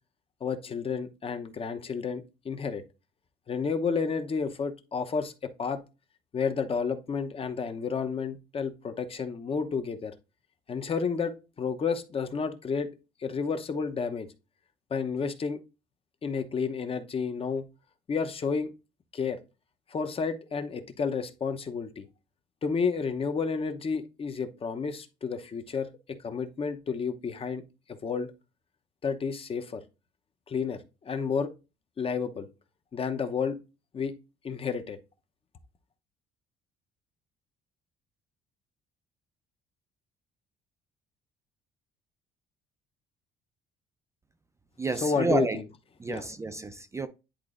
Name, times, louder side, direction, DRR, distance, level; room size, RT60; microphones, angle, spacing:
voice 1, 0.4-2.8 3.5-5.8 6.3-10.1 10.7-12.9 13.2-14.3 14.9-15.6 16.2-17.7 18.1-18.7 19.1-19.4 19.9-22.1 22.6-27.6 27.9-28.3 29.0-29.8 30.5-31.5 32.0-32.5 32.9-33.6 33.9-34.1 34.4-35.0 44.9-45.7 46.1-46.2, left 5 dB, 35° left, 0.8 m, -31 dB
voice 2, 44.8-45.6 46.0-47.1, right 3 dB, 15° right, 0.5 m, -30 dB
10.5 x 3.8 x 2.5 m
cardioid pair, 110°, 17 cm